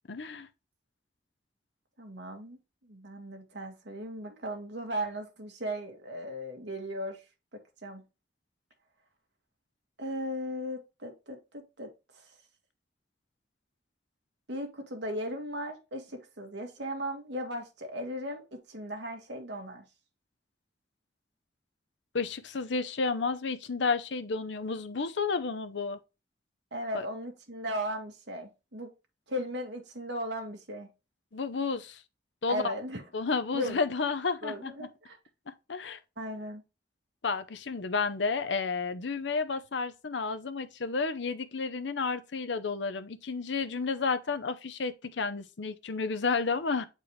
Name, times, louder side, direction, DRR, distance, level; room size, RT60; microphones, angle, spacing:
voice 1, 0.1-0.5 22.1-26.0 26.9-27.1 31.3-32.0 32.4-32.7 33.1-34.9 35.5-36.0 37.2-46.9, left 4 dB, 85° left, 0.7 m, -31 dB
voice 2, 2.0-2.6 2.9-7.2 7.8-8.0 10.0-11.4 11.8-11.9 14.5-19.8 26.7-28.9 29.3-30.9 32.5-33.0 33.5-33.8 34.4-35.2 36.2-36.6, equal, 80° right, 1.7 m, -37 dB
8.4 x 4.5 x 3.2 m
head